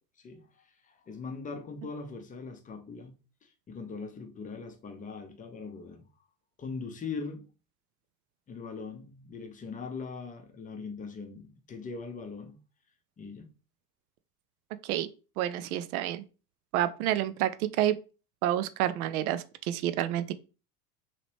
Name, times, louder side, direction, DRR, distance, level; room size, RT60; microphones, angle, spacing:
voice 1, 0.2-6.1 6.6-7.5 8.5-12.6 13.2-13.5, left 4 dB, 15° left, 0.6 m, -41 dB
voice 2, 15.4-16.2 16.7-17.9 18.4-20.3, right 12 dB, 65° right, 0.5 m, -29 dB
2.9 x 2.8 x 3.0 m
hypercardioid pair, 80°, 47 cm